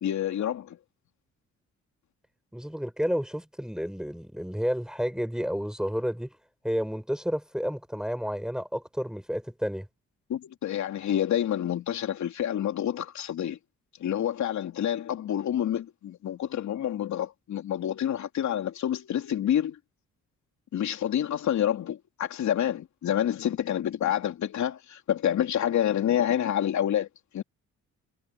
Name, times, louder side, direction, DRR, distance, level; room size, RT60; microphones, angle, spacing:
voice 1, 0.0-0.8 10.3-13.6 14.0-19.8 20.7-27.1 27.3-27.4, left 10 dB, 70° left, 3.2 m, -28 dB
voice 2, 2.5-6.3 6.6-9.9, equal, ahead, 6.4 m, -31 dB
cardioid pair, 90°, 30 cm